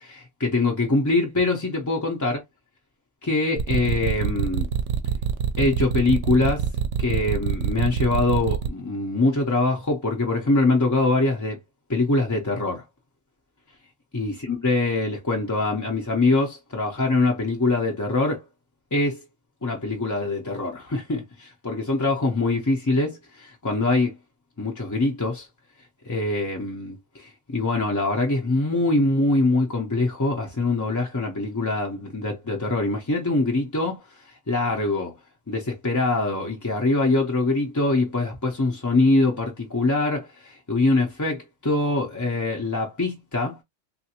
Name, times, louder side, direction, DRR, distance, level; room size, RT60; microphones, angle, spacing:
voice 1, 0.0-2.4 3.2-4.7 5.6-6.7 7.0-11.6 11.9-12.8 14.1-18.4 18.9-19.2 19.6-24.2 24.6-25.5 26.1-34.0 34.5-35.1 35.5-43.6, left 2 dB, 25° left, 0.4 m, -23 dB
sound 1, 3.6-8.7, right 9 dB, 75° right, 0.9 m, -25 dB
3.2 x 2.5 x 2.8 m
omnidirectional pair, 1.2 m